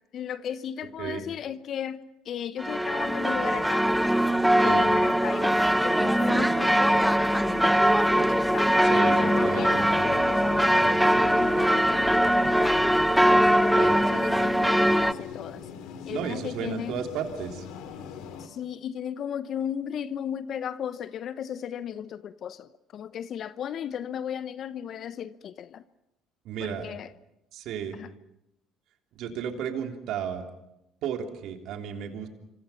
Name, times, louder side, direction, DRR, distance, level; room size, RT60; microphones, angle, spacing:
voice 1, 0.0-3.9 4.6-9.7 10.5-12.8 13.4-15.7 16.1-17.0 18.4-25.8 26.6-27.1 27.9-28.1, left 9 dB, 55° left, 15 dB, 0.8 m, -36 dB
sound 1, 2.6-15.1, equal, 5° right, 0.9 m, -22 dB
sound 2, 5.2-18.5, left 7 dB, 70° left, 2.5 m, -41 dB
voice 2, 8.8-9.9 13.7-14.0 16.1-17.6 26.4-26.9 27.5-28.0 29.1-30.4 31.0-32.3, right 8 dB, 65° right, 4 dB, 3.2 m, -33 dB
27.0 x 25.5 x 5.9 m, 0.86 s
hypercardioid pair, 70°, 0 cm